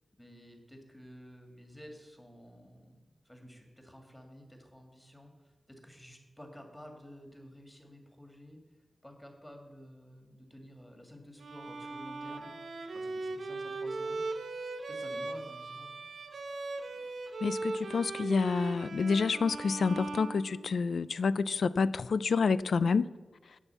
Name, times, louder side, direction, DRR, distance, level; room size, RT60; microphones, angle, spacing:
voice 1, 0.2-8.6 9.0-14.3 14.9-16.1, equal, 5° left, 2.1 m, -52 dB
Bowed string instrument, 11.4-21.1, right 3 dB, 80° right, 0.9 m, -39 dB
voice 2, 17.4-23.1, left 5 dB, 75° left, 0.3 m, -28 dB
11.0 x 5.4 x 8.1 m
wide cardioid pair, 100°, 0 cm